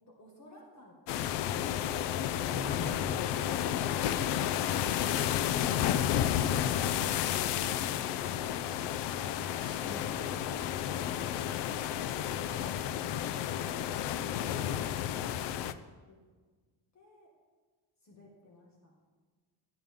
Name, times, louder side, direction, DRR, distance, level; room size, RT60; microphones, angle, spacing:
voice 1, 0.1-1.0 16.1-16.2 16.9-17.3 18.0-18.9, left 1 dB, 40° left, -1 dB, 1.9 m, -54 dB
sound 1, 1.1-15.7, left 10 dB, 70° left, 0.6 m, -31 dB
voice 2, 2.5-3.2 9.5-10.8 14.9-15.3, left 1 dB, 10° right, -5 dB, 2.6 m, -45 dB
12.5 x 8.8 x 3.7 m, 1.4 s
cardioid pair, 145°, 44 cm